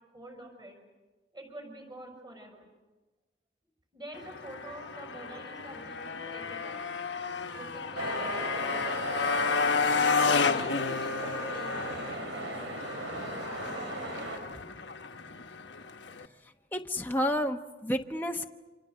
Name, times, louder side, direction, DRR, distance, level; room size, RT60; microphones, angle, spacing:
voice 1, 0.1-0.8 1.3-2.7 3.9-6.8 7.5-9.7 10.5-12.9, right 1 dB, 25° right, 3 dB, 6.0 m, -47 dB
Motorcycle, 4.1-16.3, left 5 dB, 75° left, 1.2 m, -32 dB
sound 1, 8.0-14.4, right 1 dB, 90° right, 5.6 m, -37 dB
voice 2, 16.7-18.5, equal, 10° left, 3 dB, 0.9 m, -30 dB
29.0 x 26.5 x 6.7 m, 1.2 s
head